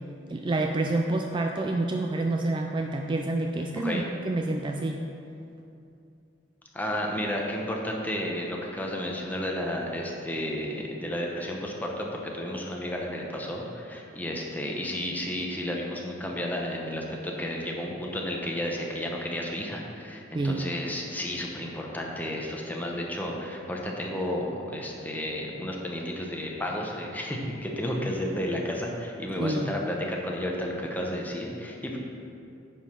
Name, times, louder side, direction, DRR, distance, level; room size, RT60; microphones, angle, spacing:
voice 1, 0.3-5.0 20.3-20.7 29.4-29.7, right 2 dB, 25° right, 3 dB, 0.3 m, -28 dB
voice 2, 6.7-32.0, left 1 dB, 10° left, -1 dB, 0.9 m, -32 dB
9.0 x 5.1 x 5.8 m, 2.6 s
head